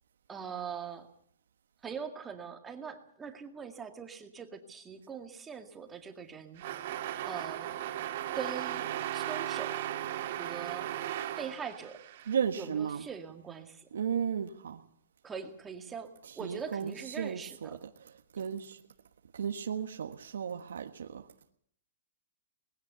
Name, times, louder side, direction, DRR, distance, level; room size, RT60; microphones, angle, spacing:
voice 1, 0.3-1.1 1.8-6.6 7.2-7.8 8.3-9.8 10.4-10.9 11.4-12.0 12.6-13.9 15.2-17.8, right 6 dB, 10° right, 2.1 m, -42 dB
sound 1, 6.6-12.3, right 12 dB, 45° right, 2.6 m, -36 dB
voice 2, 12.3-13.1 13.9-14.8 16.2-18.8 19.3-21.3, right 7 dB, 90° right, 1.5 m, -35 dB
20.0 x 16.0 x 8.2 m
hypercardioid pair, 160°, 0 cm